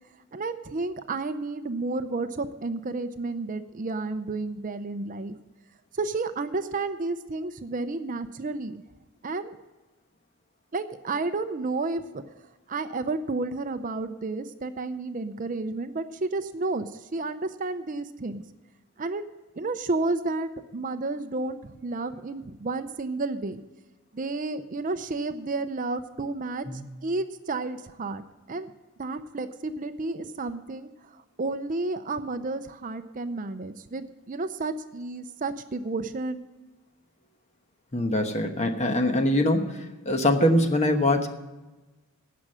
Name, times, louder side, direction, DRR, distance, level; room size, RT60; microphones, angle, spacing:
voice 1, 0.3-5.3 5.9-8.8 9.2-9.6 10.7-12.2 12.7-18.4 19.0-19.2 19.6-23.6 24.1-26.7 27.0-28.7 29.0-36.4, right 3 dB, 35° right, 10 dB, 0.5 m, -31 dB
voice 2, 37.9-41.3, left 1 dB, 30° left, 6 dB, 1.1 m, -23 dB
16.5 x 6.2 x 7.4 m, 1.1 s
head